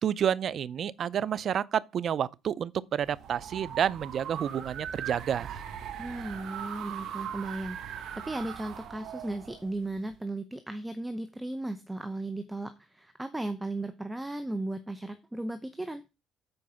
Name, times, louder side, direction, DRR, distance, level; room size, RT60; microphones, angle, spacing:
voice 1, 0.0-5.6, right 9 dB, 45° right, 0.5 m, -30 dB
sound 1, 3.0-10.2, right 9 dB, 65° right, 1.4 m, -40 dB
voice 2, 6.0-16.0, right 2 dB, 10° right, 0.8 m, -36 dB
7.9 x 4.7 x 6.9 m
cardioid pair, 110°, 0 cm